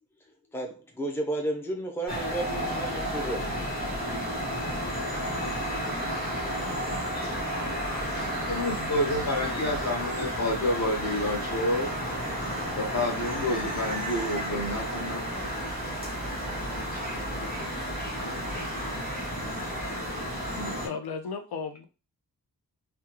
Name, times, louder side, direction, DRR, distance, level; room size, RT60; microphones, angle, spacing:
voice 1, 0.5-3.6, right 1 dB, 5° left, 1 dB, 0.5 m, -32 dB
sound 1, 2.1-20.9, equal, 25° left, 1.4 m, -32 dB
voice 2, 8.5-11.9 12.8-15.5 20.5-20.8, left 1 dB, 45° left, 0 dB, 1.0 m, -29 dB
voice 3, 18.2-18.7 20.8-21.9, left 5 dB, 85° left, 7 dB, 0.5 m, -36 dB
3.5 x 2.2 x 2.9 m, 0.32 s
wide cardioid pair, 155°, 37 cm